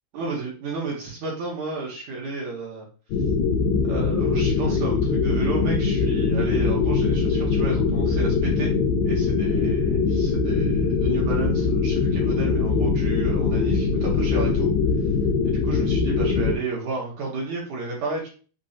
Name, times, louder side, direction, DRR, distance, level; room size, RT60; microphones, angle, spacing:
voice 1, 0.1-2.9 3.8-8.7 9.0-14.7 15.4-18.3, right 3 dB, 70° right, -4 dB, 1.9 m, -32 dB
sound 1, 3.1-16.6, left 4 dB, 80° left, 2.0 m, -22 dB
6.4 x 3.0 x 2.7 m, 0.37 s
omnidirectional pair, 4.7 m